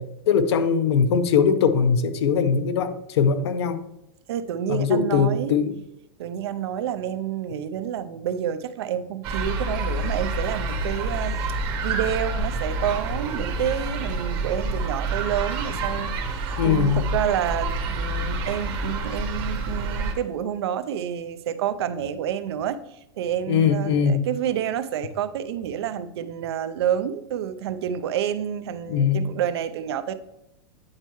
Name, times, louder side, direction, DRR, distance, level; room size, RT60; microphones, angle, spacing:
voice 1, 0.0-3.8 4.7-5.8 16.6-17.0 23.5-24.2 28.9-29.3, left 6 dB, 80° left, 9 dB, 0.7 m, -21 dB
voice 2, 4.3-5.5 6.2-22.8 23.2-30.1, right 9 dB, 75° right, 12 dB, 0.5 m, -29 dB
sound 1, 9.2-20.1, right 2 dB, 30° right, 0.9 m, -28 dB
8.8 x 4.5 x 3.0 m, 0.87 s
supercardioid pair, 175°, 14 cm